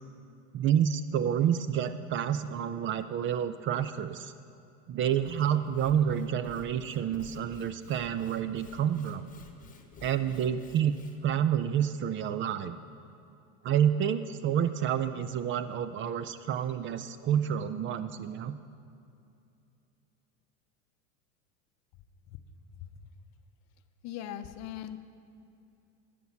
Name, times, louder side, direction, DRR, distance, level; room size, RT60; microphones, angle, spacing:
voice 1, 0.5-4.3 4.9-9.3 10.0-11.0 11.2-12.8 13.6-18.6, right 9 dB, 35° right, 12 dB, 0.4 m, -29 dB
Sawing / Wood, 5.1-11.3, left 5 dB, 25° left, 1.2 m, -53 dB
voice 2, 24.0-25.0, left 11 dB, 50° left, 10 dB, 0.7 m, -40 dB
12.0 x 8.5 x 5.8 m, 2.6 s
supercardioid pair, 125°, 35 cm